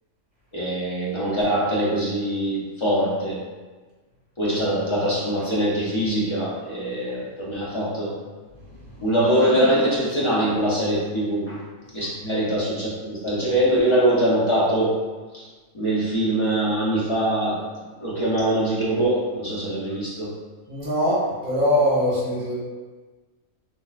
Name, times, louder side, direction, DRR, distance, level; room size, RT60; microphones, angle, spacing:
voice 1, 0.5-3.4 4.4-8.1 9.0-11.6 11.9-14.9 15.3-15.5 15.7-17.6 18.0-20.3, right 1 dB, 45° left, -7 dB, 0.3 m, -23 dB
voice 2, 20.7-22.5, equal, 40° right, -9 dB, 1.4 m, -22 dB
3.1 x 2.8 x 2.4 m, 1.3 s
omnidirectional pair, 1.4 m